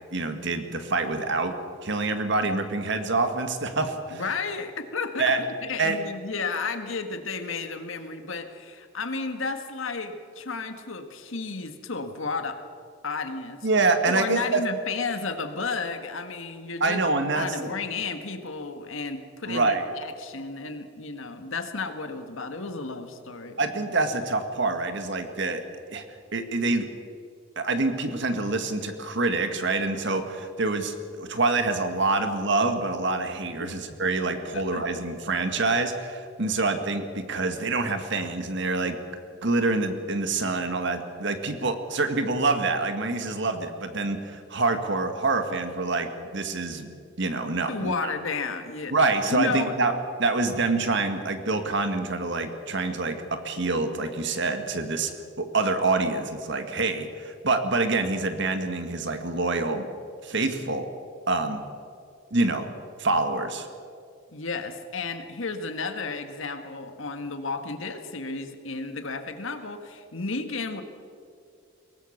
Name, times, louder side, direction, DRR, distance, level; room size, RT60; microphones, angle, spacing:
voice 1, 0.1-1.6 1.8-4.2 5.2-5.4 5.8-6.0 13.6-14.6 16.8-17.5 19.5-19.8 23.6-25.6 25.9-26.0 26.3-26.8 27.6-39.0 39.4-46.9 47.2-48.1 48.9-49.9 50.2-55.1 55.4-59.9 60.2-60.9 61.3-61.6 62.3-62.7 63.0-63.7, right 3 dB, 55° right, 7 dB, 1.8 m, -26 dB
voice 2, 4.1-12.6 13.0-13.7 14.1-17.0 17.4-23.6 33.6-33.8 34.5-34.8 47.7-48.9 49.3-49.7 64.3-70.8, left 4 dB, 70° left, 7 dB, 1.7 m, -32 dB
22.5 x 18.5 x 6.6 m, 2.3 s
head